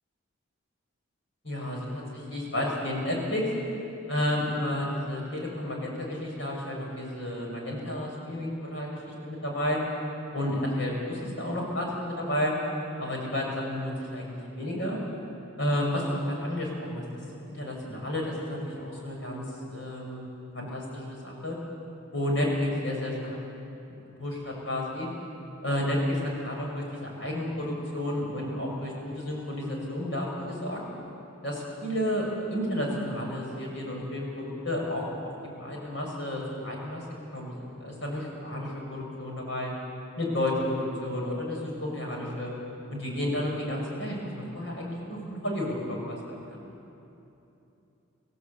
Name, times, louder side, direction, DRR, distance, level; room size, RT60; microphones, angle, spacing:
voice 1, 1.4-3.5 4.1-9.8 10.3-12.5 13.0-15.0 15.6-17.0 17.5-19.4 19.7-20.3 20.5-21.6 22.1-23.4 23.9-25.1 25.6-30.8 31.4-35.3 35.6-39.7 40.2-42.5 42.9-46.2 46.5-46.6, left 1 dB, 60° left, -2 dB, 6.5 m, -31 dB
27.0 x 16.0 x 8.5 m, 2.9 s
head